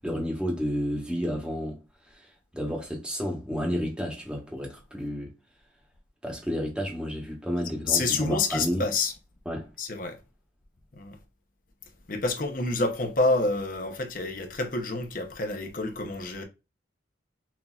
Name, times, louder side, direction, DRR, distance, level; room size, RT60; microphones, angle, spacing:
voice 1, 0.0-1.8 2.1-5.3 6.2-8.8 9.4-9.7, equal, 5° right, 1.1 m, -31 dB
voice 2, 7.9-9.1 9.8-10.2 11.0-11.2 12.1-16.4, left 3 dB, 45° left, 0.7 m, -28 dB
5.9 x 2.7 x 2.4 m
head